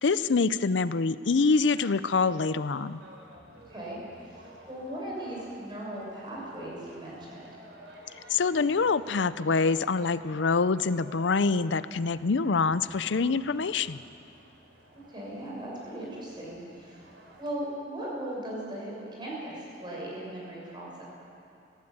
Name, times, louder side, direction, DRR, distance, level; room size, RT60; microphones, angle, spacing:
voice 1, 0.0-3.0 8.3-14.0, left 4 dB, 85° left, 15 dB, 0.6 m, -25 dB
sound 1, 1.7-17.5, right 1 dB, 75° right, 3.9 m, -52 dB
voice 2, 3.7-7.5 12.8-13.4 14.9-17.0 17.4-21.0, right 1 dB, 25° right, -4 dB, 6.4 m, -38 dB
20.0 x 16.0 x 8.8 m, 2.7 s
head